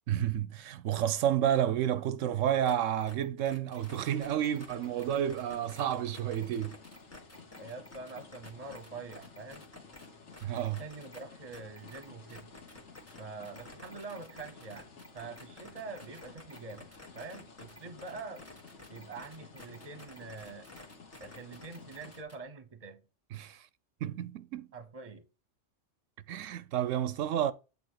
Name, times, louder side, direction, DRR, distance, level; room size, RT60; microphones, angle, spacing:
voice 1, 0.1-6.8 10.4-10.8 23.3-23.7 24.0-24.7 26.3-27.5, right 10 dB, 85° right, 1.0 m, -30 dB
sound 1, 2.6-2.7 3.0-10.1 10.3-11.2 11.5-22.4, left 1 dB, 10° left, 1.4 m, -52 dB
sound 2, 3.8-22.2, left 4 dB, 65° left, 1.6 m, -53 dB
voice 2, 7.5-9.7 10.8-12.5 13.2-16.9 17.1-18.4 18.9-20.7 21.2-23.0 24.7-25.3, right 4 dB, 30° right, 1.0 m, -45 dB
8.5 x 3.4 x 6.4 m
omnidirectional pair, 1.3 m